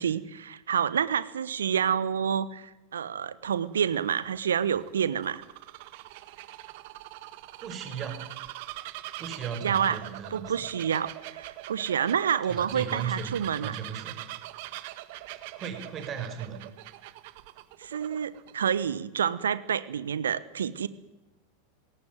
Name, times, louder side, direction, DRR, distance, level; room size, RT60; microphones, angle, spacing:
voice 1, 0.0-5.4 9.6-10.0 10.3-13.7 17.8-20.9, right 8 dB, 75° right, 17 dB, 1.1 m, -28 dB
Bird vocalization bird call bird song, 3.5-18.5, right 17 dB, 55° right, 1.6 m, -43 dB
voice 2, 7.6-8.2 9.2-10.6 12.5-13.3 13.6-14.2 15.5-16.6, right 7 dB, 30° right, 7 dB, 5.6 m, -36 dB
21.0 x 18.0 x 9.3 m, 1.0 s
figure-of-eight pair, 90°, 0 cm